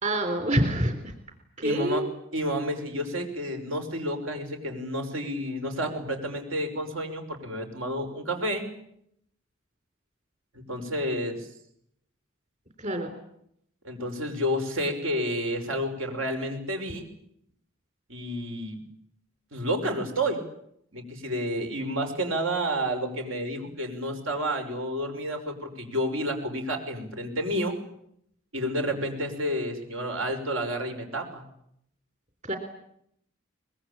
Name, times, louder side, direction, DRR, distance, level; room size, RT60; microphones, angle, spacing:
voice 1, 0.0-1.0 1.6-2.1 12.8-13.1 32.4-32.6, right 1 dB, 35° right, 6 dB, 3.6 m, -26 dB
voice 2, 1.6-2.1 2.3-8.6 10.5-11.5 13.8-17.1 18.1-18.8 19.5-20.4 20.9-27.8 28.5-31.4, equal, 80° right, 4 dB, 5.9 m, -30 dB
24.0 x 22.0 x 8.7 m, 0.73 s
head